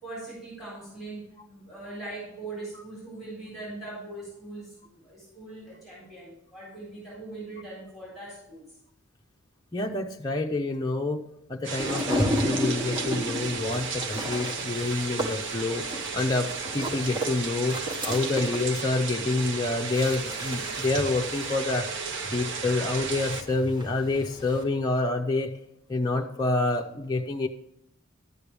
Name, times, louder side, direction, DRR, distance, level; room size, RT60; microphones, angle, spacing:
voice 1, 0.0-8.6, right 2 dB, ahead, -6 dB, 4.1 m, -41 dB
voice 2, 9.7-11.2 11.5-15.8 16.1-17.8 18.1-21.9 22.3-25.6 25.9-27.5, left 2 dB, 20° left, 0 dB, 0.6 m, -27 dB
sound 1, 11.6-23.4, right 5 dB, 60° right, 0.9 m, -34 dB
sound 2, 11.8-24.6, equal, 20° right, 1.5 m, -34 dB
11.5 x 8.4 x 3.4 m, 0.80 s
head